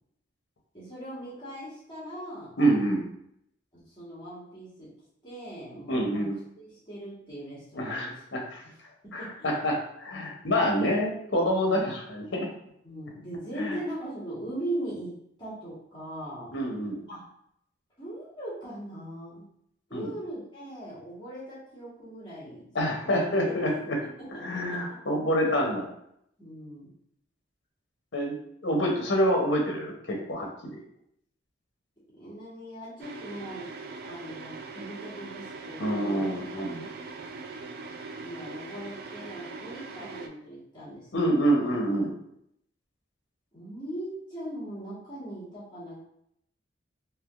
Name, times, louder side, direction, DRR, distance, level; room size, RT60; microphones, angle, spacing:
voice 1, 0.7-2.6 3.7-4.9 5.2-6.3 6.6-8.1 9.0-9.5 10.8-11.9 12.8-16.5 17.1-17.2 18.0-19.4 19.9-22.6 22.9-23.2 23.6-23.7 24.2-24.8 26.4-26.9 32.1-33.7 34.0-36.4 38.2-41.7 43.5-46.0, right 1 dB, 25° left, -10 dB, 1.3 m, -40 dB
voice 2, 2.6-3.0 5.9-6.4 7.8-8.6 9.1-12.5 13.6-13.8 16.5-17.0 19.9-20.1 22.7-24.0 24.4-25.9 28.1-28.4 28.6-30.8 35.8-36.9 41.1-42.1, equal, 65° left, 0 dB, 0.8 m, -27 dB
sound 1, 33.0-40.3, right 3 dB, 55° right, 0.3 m, -41 dB
3.3 x 2.8 x 2.4 m, 0.73 s
head